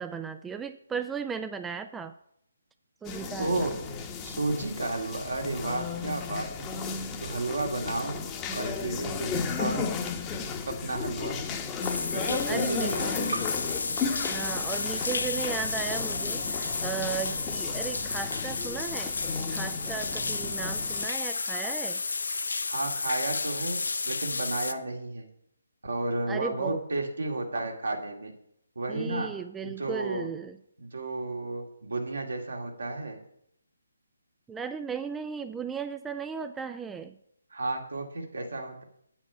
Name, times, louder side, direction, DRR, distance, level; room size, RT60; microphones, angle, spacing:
voice 1, 0.0-2.1 3.0-3.7 12.5-13.0 14.2-19.2 19.5-22.0 26.3-26.8 28.9-30.6 34.5-37.2, right 6 dB, 10° right, 10 dB, 0.4 m, -36 dB
sound 1, 3.0-21.1, left 5 dB, 15° left, 1.0 m, -35 dB
voice 2, 3.4-3.8 4.2-6.7 7.2-8.2 8.5-9.9 10.7-11.4 12.1-13.3 22.6-23.8 24.1-25.3 25.8-28.3 28.8-29.3 29.6-30.3 30.8-33.2 37.5-38.8, right 2 dB, 70° right, 1 dB, 2.4 m, -32 dB
sound 2, 11.8-24.7, left 4 dB, 70° left, 0.8 m, -32 dB
8.9 x 8.9 x 5.6 m, 0.74 s
figure-of-eight pair, 145°, 0 cm